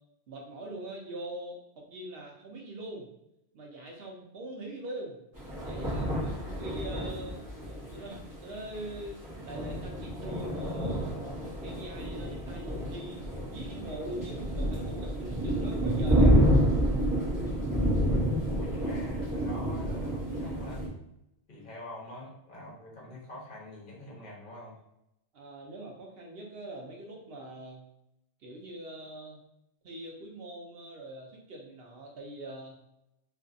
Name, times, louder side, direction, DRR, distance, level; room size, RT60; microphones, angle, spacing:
voice 1, 0.3-3.1 3.5-5.2 5.6-7.4 7.7-11.1 11.6-13.2 13.5-16.4 25.3-27.8 28.4-29.4 29.8-32.8, right 1 dB, 70° right, 0 dB, 0.8 m, -43 dB
sound 1, 5.3-20.9, equal, 25° right, 0.6 m, -29 dB
voice 2, 18.5-20.9 21.5-24.8, left 1 dB, 55° left, -3 dB, 0.8 m, -45 dB
2.6 x 2.5 x 2.3 m, 0.82 s
omnidirectional pair, 1.1 m